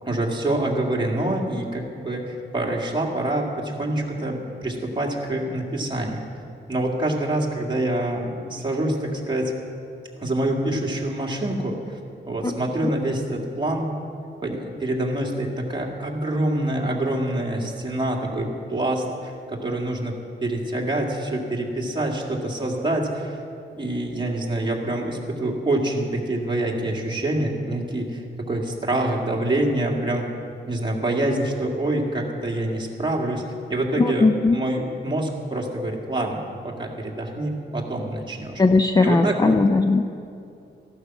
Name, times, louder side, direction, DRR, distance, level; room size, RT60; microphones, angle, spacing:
voice 1, 0.0-6.2 6.7-9.5 10.2-12.0 12.3-13.9 14.4-20.1 20.4-23.4 23.7-28.2 28.5-30.3 30.7-33.4 33.7-38.6 39.0-39.6, right 1 dB, 25° right, -1 dB, 2.2 m, -26 dB
voice 2, 34.0-34.6 38.6-40.0, left 3 dB, 20° left, 8 dB, 0.4 m, -18 dB
15.0 x 12.0 x 6.0 m, 2.5 s
wide cardioid pair, 135°, 19 cm